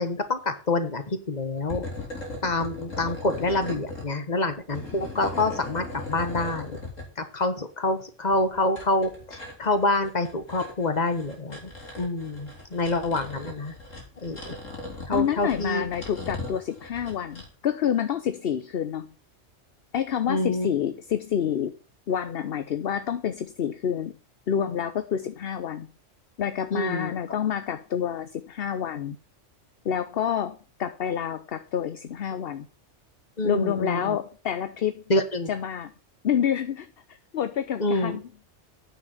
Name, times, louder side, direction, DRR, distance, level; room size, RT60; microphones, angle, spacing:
voice 1, 0.0-1.8 2.4-6.8 7.2-11.6 12.0-13.7 14.2-14.5 15.1-15.8 20.3-20.7 26.7-27.1 33.4-34.2 35.1-35.5 37.8-38.2, left 2 dB, 35° left, 9 dB, 1.6 m, -27 dB
sound 1, 1.6-4.1 4.5-7.0 8.3-17.5, left 2 dB, 85° left, 4.2 m, -38 dB
voice 2, 15.1-19.1 19.9-21.7 22.1-24.2 24.5-25.9 26.4-29.2 29.8-32.7 33.4-35.0 35.5-35.9 36.2-38.2, left 9 dB, 55° left, 11 dB, 0.9 m, -28 dB
9.7 x 6.9 x 7.2 m, 0.36 s
omnidirectional pair, 1.3 m